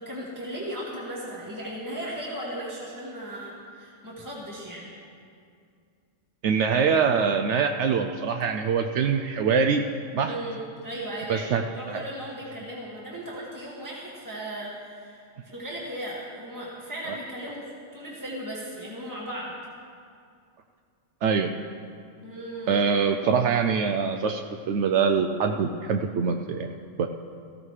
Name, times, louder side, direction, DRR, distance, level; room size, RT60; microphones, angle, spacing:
voice 1, 0.0-4.9 10.2-19.5 22.2-22.8, right 1 dB, 15° right, -6 dB, 2.0 m, -36 dB
voice 2, 6.4-9.8 10.1-10.3 11.3-11.6 11.9-12.0 17.1-17.2 21.2-21.5 22.7-26.7 27.0-27.1, right 6 dB, 70° right, 5 dB, 0.9 m, -24 dB
17.5 x 15.0 x 3.3 m, 2.3 s
omnidirectional pair, 1.3 m